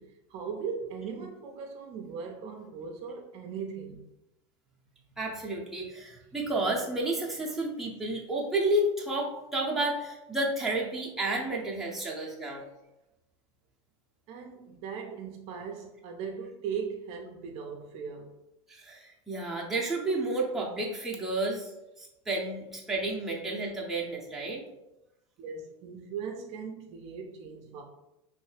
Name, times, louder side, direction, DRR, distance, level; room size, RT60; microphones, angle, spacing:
voice 1, 0.0-4.0 14.3-18.4 25.4-27.8, right 6 dB, 45° right, 2 dB, 0.4 m, -39 dB
voice 2, 5.2-12.6 18.7-21.7 22.0-24.6, right 1 dB, ahead, -4 dB, 0.6 m, -31 dB
3.1 x 2.6 x 3.2 m, 0.93 s
supercardioid pair, 135°, 15 cm